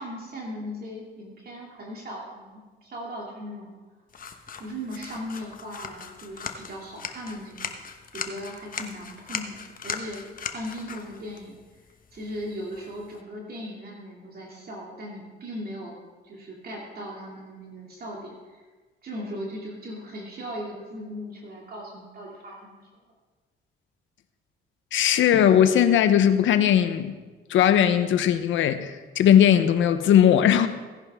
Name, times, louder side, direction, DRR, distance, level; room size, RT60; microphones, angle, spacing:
voice 1, 0.0-3.7 4.6-10.2 10.5-11.6 12.1-16.0 16.2-18.6 19.0-22.8, equal, 50° right, -2 dB, 2.6 m, -38 dB
sound 1, 4.1-13.2, left 6 dB, 45° left, 1.1 m, -39 dB
voice 2, 24.9-27.1 27.5-30.7, left 9 dB, 75° left, 10 dB, 0.9 m, -19 dB
17.0 x 10.5 x 3.6 m, 1.3 s
cardioid pair, 90°, 20 cm